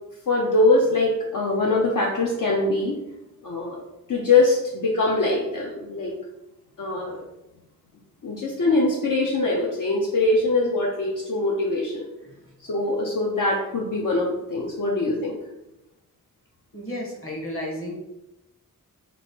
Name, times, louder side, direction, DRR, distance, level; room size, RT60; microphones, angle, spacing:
voice 1, 0.3-3.0 3.4-3.8 4.1-6.1 6.8-7.2 8.2-12.1 12.6-15.4, left 2 dB, 65° left, -2 dB, 0.7 m, -22 dB
voice 2, 16.7-17.9, left 1 dB, 40° left, -1 dB, 1.2 m, -32 dB
3.1 x 3.0 x 4.3 m, 0.95 s
wide cardioid pair, 60°, 34 cm